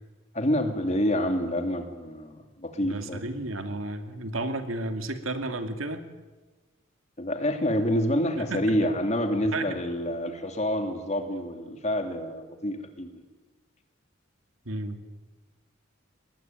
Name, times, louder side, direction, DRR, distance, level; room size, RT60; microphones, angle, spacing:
voice 1, 0.3-3.2 7.2-13.1, equal, 35° left, 5 dB, 2.7 m, -27 dB
voice 2, 2.8-6.1 8.5-8.7 9.5-9.8 14.6-15.0, right 2 dB, 90° right, 7 dB, 2.4 m, -32 dB
24.5 x 20.5 x 9.3 m, 1.3 s
head